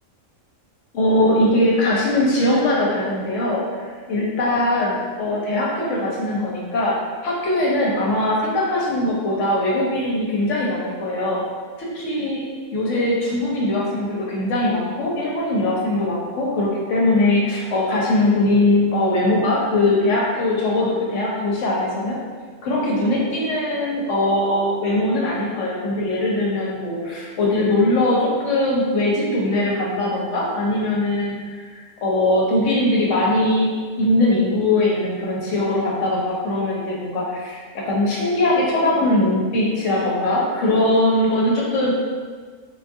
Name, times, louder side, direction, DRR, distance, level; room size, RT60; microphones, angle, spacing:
voice 1, 0.9-11.4 11.8-12.4 12.7-22.2 22.6-33.7 34.0-41.9, left 1 dB, 65° left, -4 dB, 0.9 m, -21 dB
3.8 x 2.3 x 2.6 m, 1.5 s
omnidirectional pair, 1.5 m